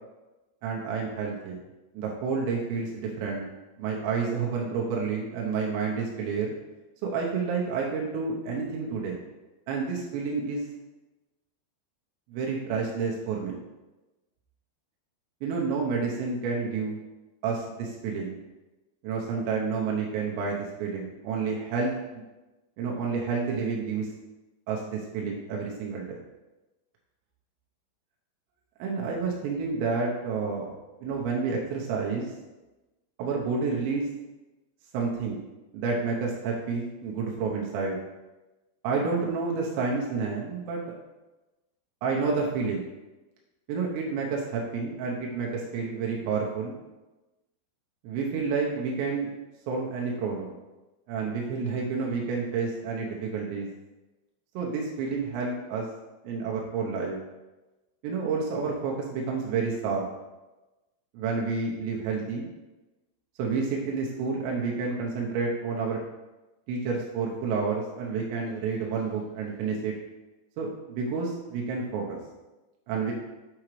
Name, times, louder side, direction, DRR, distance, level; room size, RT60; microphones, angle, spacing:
voice 1, 0.6-1.6 1.9-3.4 3.8-6.6 7.0-9.2 9.7-10.7 12.3-13.6 15.4-17.0 17.4-18.4 19.0-22.2 22.8-24.1 24.7-26.2 28.8-30.7 31.0-32.3 33.2-34.1 34.9-35.4 35.7-38.0 38.8-40.8 42.0-42.8 43.7-46.8 48.0-49.3 49.7-50.5 51.1-53.7 54.6-55.9 56.2-57.2 58.0-60.1 61.1-62.5 63.4-66.0 66.7-69.9 70.6-72.2 72.9-73.1, right 4 dB, 90° right, -2 dB, 3.0 m, -29 dB
7.7 x 4.8 x 3.1 m, 1.1 s
omnidirectional pair, 5.0 m